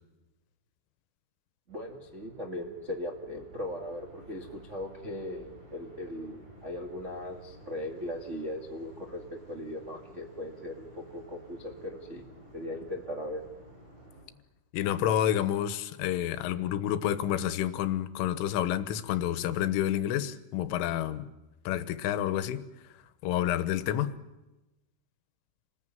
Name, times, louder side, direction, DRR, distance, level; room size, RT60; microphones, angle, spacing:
sound 1, 1.7-14.2, right 1 dB, 45° right, 8.8 m, -53 dB
voice 1, 1.7-12.2 12.5-13.4, left 1 dB, 75° right, 0.6 m, -38 dB
voice 2, 14.7-21.3 21.7-22.7 23.2-24.2, left 11 dB, 85° left, 3.6 m, -29 dB
28.0 x 20.0 x 9.2 m
omnidirectional pair, 5.6 m